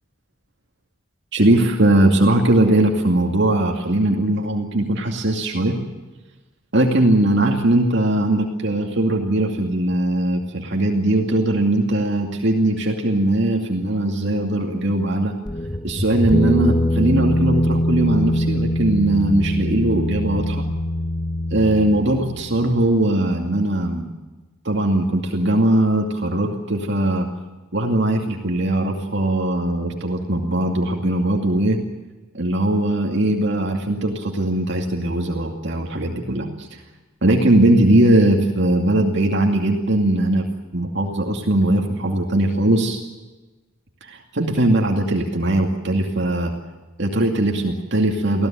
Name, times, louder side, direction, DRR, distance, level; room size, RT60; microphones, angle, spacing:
voice 1, 1.3-5.8 6.7-15.3 15.8-20.7 21.5-24.1 24.6-27.3 27.7-31.8 32.3-36.8 37.2-40.4 40.7-43.0 44.0-46.5 47.0-48.5, right 1 dB, 60° right, 1 dB, 2.4 m, -20 dB
sound 1, 15.5-22.9, left 1 dB, 20° left, 0.9 m, -23 dB
25.0 x 16.0 x 9.1 m, 1.2 s
head